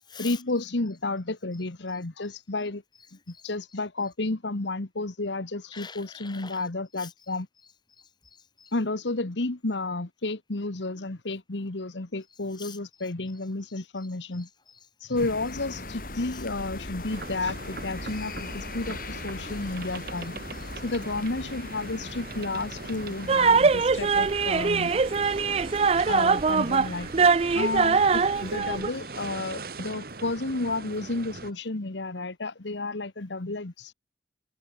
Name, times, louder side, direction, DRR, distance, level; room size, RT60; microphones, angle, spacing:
voice 1, 0.2-2.8 3.3-7.5 8.7-14.5 15.0-20.3 20.8-25.0 26.0-27.1 27.5-33.9, left 2 dB, 80° left, 1.4 m, -31 dB
voice 2, 5.7-6.6 7.0-7.1 8.0-8.7 12.6-12.8 14.3-14.4 16.3-16.4 25.3-26.1, left 6 dB, 25° left, 2.3 m, -46 dB
sound 1, 15.2-28.6, left 2 dB, 50° left, 4.9 m, -41 dB
sound 2, 17.1-31.5, right 3 dB, 55° right, 1.8 m, -41 dB
sound 3, 23.3-28.9, right 5 dB, 35° right, 0.4 m, -22 dB
head